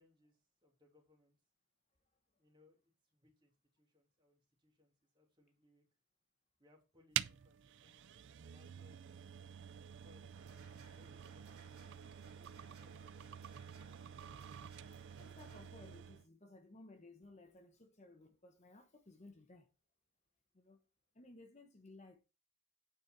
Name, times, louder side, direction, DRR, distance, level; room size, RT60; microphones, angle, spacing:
voice 1, 0.0-1.4 2.4-5.8 6.6-8.2 8.4-9.0 9.8-14.2, left 2 dB, 20° right, 2.8 m, -71 dB
External-storage-enclosure-switch-on-and-hard-drive-spin-up, 7.1-16.3, right 11 dB, 55° right, 0.4 m, -47 dB
sound 1, 10.3-15.7, right 4 dB, 75° right, 2.5 m, -63 dB
voice 2, 15.1-19.7 20.5-20.8 21.1-22.2, left 2 dB, 30° left, 0.9 m, -58 dB
9.1 x 5.1 x 4.5 m
head